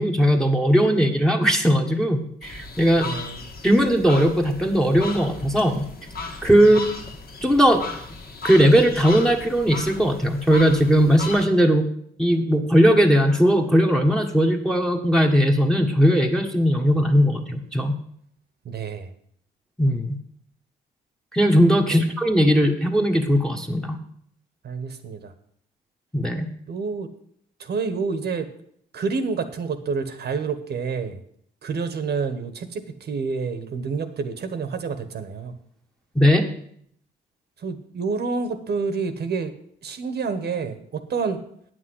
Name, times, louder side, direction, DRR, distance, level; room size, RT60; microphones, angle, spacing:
voice 1, 0.0-3.1 3.6-5.9 6.4-6.8 7.4-7.8 8.4-11.8 12.2-18.0 19.8-20.2 21.3-24.0 26.1-26.5 36.1-36.5, equal, 5° left, 1 dB, 1.4 m, -18 dB
sound 1, 2.4-11.4, left 3 dB, 50° left, 1.9 m, -36 dB
voice 2, 3.0-3.4 6.6-6.7 18.6-19.1 21.9-22.0 24.6-25.3 26.7-27.1 27.6-28.5 28.9-31.2 31.6-35.5 37.6-39.5 39.8-41.4, right 5 dB, 55° right, 9 dB, 1.3 m, -28 dB
9.0 x 6.4 x 7.8 m, 0.66 s
cardioid pair, 90°, 20 cm